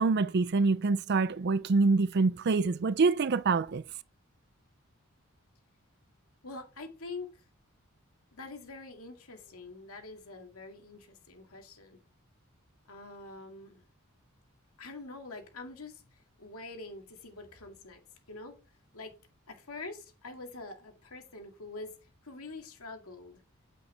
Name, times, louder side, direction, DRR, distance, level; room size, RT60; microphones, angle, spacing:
voice 1, 0.0-3.8, right 4 dB, 50° right, 0.5 m, -26 dB
voice 2, 6.4-7.4 8.3-12.0 12.9-13.8 14.8-18.0 18.3-18.6 18.9-19.2 19.5-22.0 22.2-23.4, left 3 dB, 85° left, 2.3 m, -45 dB
9.3 x 7.6 x 3.4 m
head